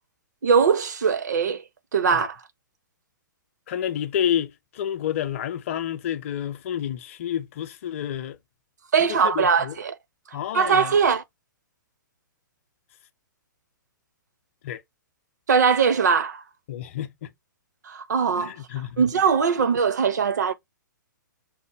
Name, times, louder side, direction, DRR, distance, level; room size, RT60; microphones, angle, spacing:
voice 1, 0.4-1.6 1.9-2.4 8.9-10.0 10.3-11.2 15.5-16.4 17.8-18.5 19.0-20.5, right 6 dB, 60° right, 0.8 m, -21 dB
voice 2, 3.7-8.4 9.0-9.7 10.3-11.0 14.6-14.8 16.7-17.3 18.4-19.0, left 10 dB, 40° left, 0.6 m, -29 dB
6.0 x 2.1 x 3.4 m
figure-of-eight pair, 115°, 11 cm